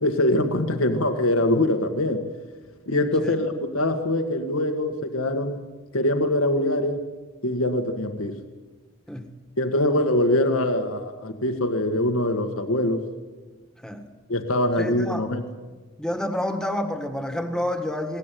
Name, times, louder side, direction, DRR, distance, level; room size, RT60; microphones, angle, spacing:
voice 1, 0.0-2.2 2.9-5.6 5.9-7.0 7.4-8.4 9.6-13.0 14.3-15.4, left 1 dB, 85° left, 6 dB, 1.8 m, -23 dB
voice 2, 14.8-15.3 16.0-18.2, left 1 dB, 5° left, 7 dB, 1.7 m, -28 dB
21.0 x 19.0 x 9.3 m, 1.3 s
head